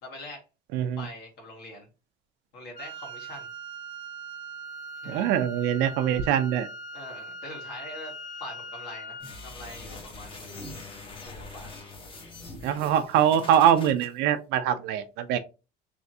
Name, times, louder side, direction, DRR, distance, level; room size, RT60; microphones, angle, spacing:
voice 1, 0.0-0.4 0.9-1.9 2.5-3.5 5.0-5.3 6.9-10.6 11.2-11.7, left 1 dB, 60° left, 1.9 m, -43 dB
Wind instrument woodwind instrument, 2.7-9.4, right 2 dB, 80° left, 1.4 m, -41 dB
voice 2, 5.1-6.7 12.6-15.4, right 10 dB, 70° right, 0.5 m, -23 dB
sound 1, 9.2-14.1, left 2 dB, 30° left, 0.9 m, -43 dB
3.4 x 3.1 x 2.7 m
cardioid pair, 135°, 18 cm